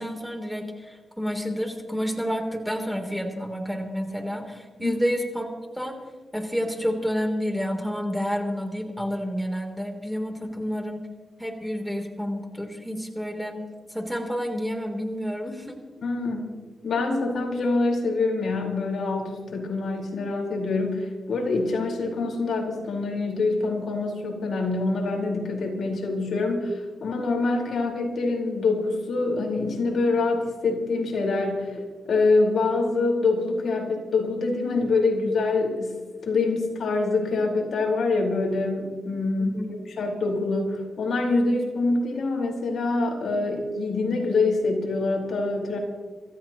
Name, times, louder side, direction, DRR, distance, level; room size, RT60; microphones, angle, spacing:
voice 1, 0.0-5.5 5.8-6.0 6.3-11.1 11.4-13.6 13.9-15.8 39.4-39.7, equal, ahead, 3 dB, 3.4 m, -29 dB
voice 2, 16.0-16.5 16.8-35.9 36.2-39.6 39.9-45.8, left 3 dB, 70° left, -1 dB, 4.6 m, -25 dB
26.5 x 14.5 x 3.1 m, 1.4 s
cardioid pair, 60°, 0 cm